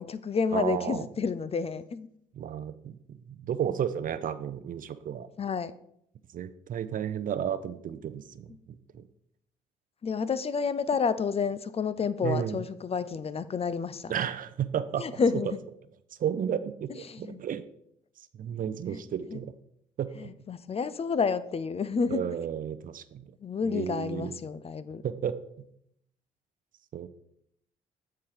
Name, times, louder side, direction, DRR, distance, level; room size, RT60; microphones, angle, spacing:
voice 1, 0.0-2.1 5.4-5.7 10.0-14.1 15.0-15.6 17.1-17.4 19.3-19.4 20.2-22.2 23.4-25.0, left 5 dB, 35° left, 15 dB, 0.5 m, -30 dB
voice 2, 0.5-1.0 2.3-5.3 6.3-9.0 12.2-12.6 14.1-15.1 16.2-17.6 18.3-19.5 20.0-20.3 22.1-23.3 23.7-24.4 25.0-25.7 26.9-27.1, right 9 dB, 55° right, 13 dB, 0.6 m, -33 dB
7.2 x 4.5 x 5.0 m, 0.72 s
hypercardioid pair, 55°, 17 cm